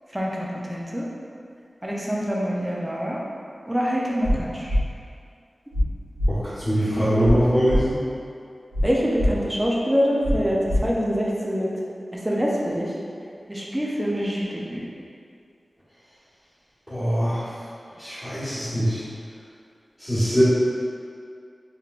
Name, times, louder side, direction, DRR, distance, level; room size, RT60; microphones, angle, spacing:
voice 1, 0.1-1.0 1.8-3.2 3.7-4.7 6.9-7.0 8.8-11.7 12.2-12.9 13.5-14.8, equal, 10° right, -4 dB, 0.5 m, -25 dB
sound 1, 4.2-4.4 4.7-4.8 5.7-5.8 6.2-6.3 7.2-7.3 7.7-7.8 8.7-8.8 9.2-9.3 10.2-10.4 10.7-10.8, equal, 90° right, 1.1 m, -21 dB
voice 2, 6.3-8.0 16.9-17.5 18.0-19.0 20.0-20.4, equal, 5° left, -17 dB, 1.3 m, -23 dB
3.2 x 2.9 x 2.4 m, 2.4 s
wide cardioid pair, 90°, 0 cm